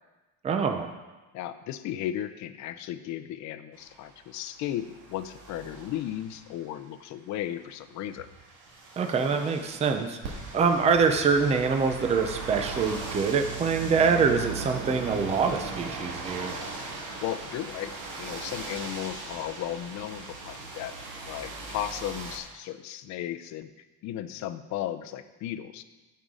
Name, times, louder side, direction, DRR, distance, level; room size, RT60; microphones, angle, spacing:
voice 1, 0.4-0.9 9.0-16.6, right 5 dB, 20° right, 6 dB, 0.5 m, -25 dB
voice 2, 1.3-8.3 10.5-10.8 17.2-20.9 21.3-23.7 24.0-25.8, left 12 dB, 50° left, 11 dB, 0.6 m, -35 dB
sound 1, 3.8-6.7 7.9-22.4, right 4 dB, 60° right, 1.8 m, -38 dB
16.0 x 5.6 x 3.7 m, 1.2 s
cardioid pair, 170°, 35 cm